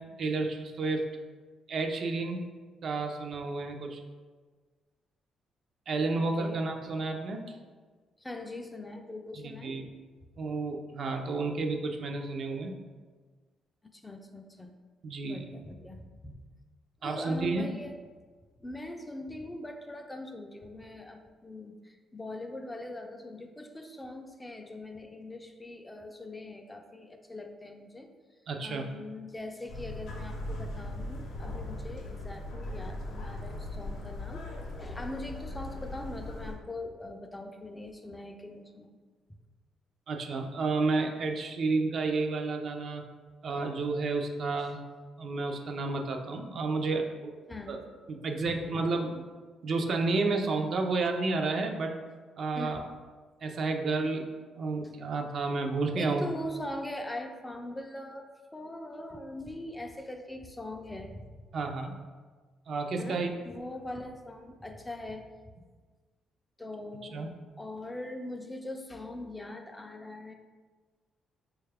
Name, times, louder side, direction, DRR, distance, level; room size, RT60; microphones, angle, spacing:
voice 1, 0.2-1.0 1.7-2.4 2.8-4.0 5.9-7.6 9.3-9.8 10.4-12.7 15.0-15.5 17.0-17.7 28.5-28.9 40.1-43.0 43.4-44.8 45.2-47.4 47.7-47.8 48.1-49.2 49.6-51.9 52.4-52.8 53.4-56.3 61.5-62.0 62.7-63.3 67.1-67.3, right 3 dB, 60° right, 3 dB, 0.4 m, -31 dB
voice 2, 6.2-6.6 6.9-7.1 8.2-9.8 13.9-14.7 15.2-16.4 17.0-18.0 18.6-28.1 28.6-34.4 34.8-39.0 47.5-47.8 48.5-48.6 52.5-52.8 55.9-61.2 63.0-65.3 66.6-67.2 67.6-70.3, left 1 dB, 15° left, 4 dB, 0.3 m, -41 dB
sound 1, 29.7-36.5, left 1 dB, 85° left, 0.6 m, -39 dB
4.0 x 2.3 x 3.3 m, 1.4 s
cardioid pair, 90°, 0 cm